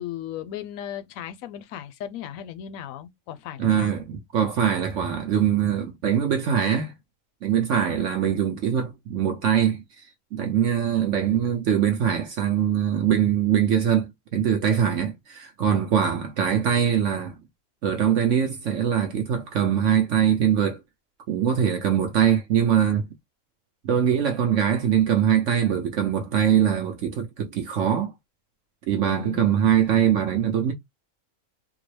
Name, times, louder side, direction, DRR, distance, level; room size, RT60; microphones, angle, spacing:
voice 1, 0.0-3.9 29.1-29.6, left 10 dB, 70° left, 0.9 m, -36 dB
voice 2, 3.6-6.9 7.4-17.4 17.8-20.8 21.3-23.1 23.8-28.1 28.9-30.7, right 9 dB, 65° right, 0.9 m, -22 dB
3.7 x 2.0 x 3.1 m
omnidirectional pair, 1.5 m